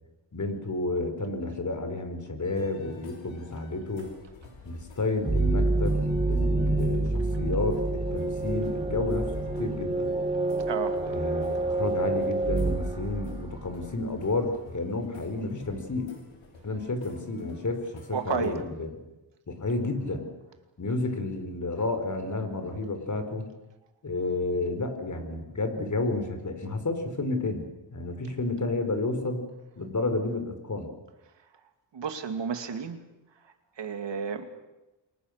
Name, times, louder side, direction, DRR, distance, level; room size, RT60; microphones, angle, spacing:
voice 1, 0.3-4.1 4.6-9.3 9.6-10.1 11.0-16.1 16.6-17.8 18.2-18.9 19.5-20.3 20.8-23.5 24.0-29.4 29.8-30.9, left 2 dB, 40° left, 6 dB, 4.9 m, -31 dB
sound 1, 2.4-18.6, left 3 dB, 90° left, 6.1 m, -49 dB
sound 2, 5.2-13.9, right 2 dB, 10° right, 4.1 m, -27 dB
voice 2, 10.7-11.0 18.1-18.6 31.9-33.0 33.8-34.5, right 6 dB, 70° right, 7 dB, 2.8 m, -31 dB
29.0 x 23.5 x 6.8 m, 1.0 s
wide cardioid pair, 105°, 45 cm